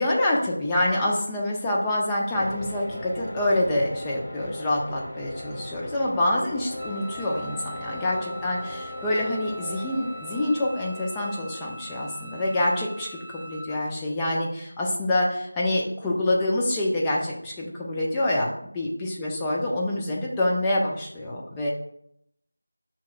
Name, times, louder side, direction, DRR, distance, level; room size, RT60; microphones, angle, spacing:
voice 1, 0.0-21.7, left 1 dB, 10° left, -4 dB, 0.4 m, -26 dB
sound 1, 2.3-12.3, left 1 dB, 25° left, 0.8 m, -39 dB
Wind instrument woodwind instrument, 6.8-13.7, equal, 60° right, 0.6 m, -42 dB
5.7 x 2.9 x 2.4 m, 0.74 s
figure-of-eight pair, 170°, 0 cm